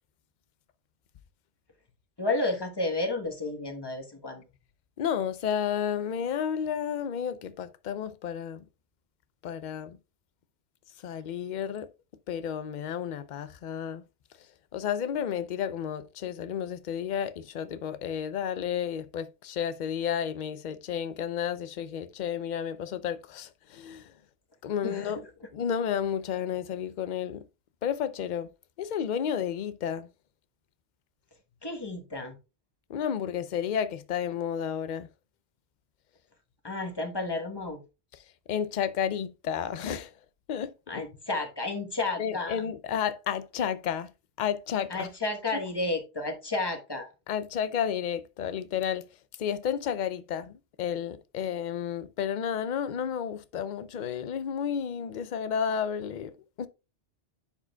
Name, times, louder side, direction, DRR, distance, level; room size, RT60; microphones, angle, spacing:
voice 1, 2.2-4.4 24.8-25.2 31.6-32.4 36.6-37.8 40.9-42.6 44.9-47.1, left 2 dB, 20° left, 1.1 m, -32 dB
voice 2, 5.0-8.6 9.4-10.0 11.0-11.9 12.3-14.0 14.7-24.1 24.6-25.2 25.5-27.4 27.8-28.5 28.8-30.1 32.9-35.1 38.5-40.1 40.5-40.7 42.2-44.1 44.4-45.1 45.5-45.6 47.3-49.0 49.4-56.7, left 8 dB, 50° left, 0.6 m, -31 dB
10.5 x 4.9 x 2.3 m
omnidirectional pair, 1.2 m